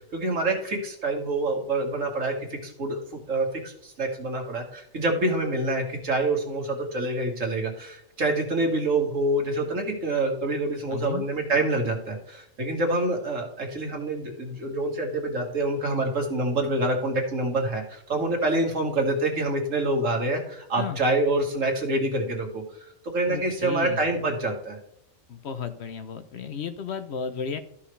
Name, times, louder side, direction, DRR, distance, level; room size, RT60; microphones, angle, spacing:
voice 1, 0.1-22.6 23.0-24.8, right 2 dB, 75° right, 1 dB, 2.1 m, -26 dB
voice 2, 10.9-11.3 20.8-21.0 23.3-24.0 25.3-27.6, left 6 dB, 60° left, 10 dB, 0.9 m, -33 dB
13.0 x 5.7 x 3.2 m, 0.71 s
omnidirectional pair, 1.4 m